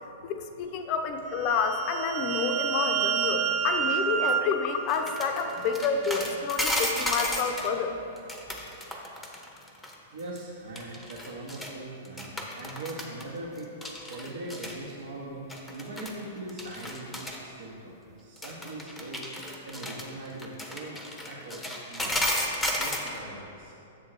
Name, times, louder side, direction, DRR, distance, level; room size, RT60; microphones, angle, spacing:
voice 1, 0.2-8.0, left 5 dB, 35° left, 6 dB, 0.6 m, -29 dB
sound 1, 1.4-5.9, right 8 dB, 30° right, 0.3 m, -30 dB
sound 2, 4.9-7.7 8.2-9.9 10.2-10.4 10.8-11.7 12.1-13.2 13.6-14.8 15.5-16.2 16.5-17.4 18.4-23.2, left 1 dB, 5° left, 0.8 m, -33 dB
voice 2, 10.1-13.7 14.0-19.3 19.6-21.0 21.2-22.3 22.8-23.7, right 2 dB, 60° right, -4 dB, 0.9 m, -41 dB
7.6 x 3.6 x 6.2 m, 2.7 s
figure-of-eight pair, 105°, 0 cm